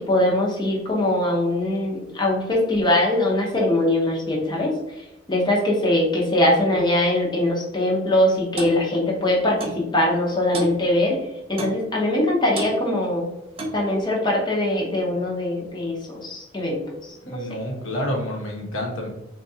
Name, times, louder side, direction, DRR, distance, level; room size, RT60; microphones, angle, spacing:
voice 1, 0.0-4.7 5.3-11.2 11.5-13.3 13.7-17.4, left 1 dB, 20° left, -3 dB, 0.7 m, -22 dB
Clock, 8.6-8.8 9.6-9.8 10.5-10.8 11.6-11.8 12.6-12.8 13.6-13.8, right 2 dB, 30° right, 0.4 m, -30 dB
voice 2, 17.2-19.1, left 1 dB, 85° left, -1 dB, 0.9 m, -28 dB
3.8 x 2.3 x 2.7 m, 0.93 s
head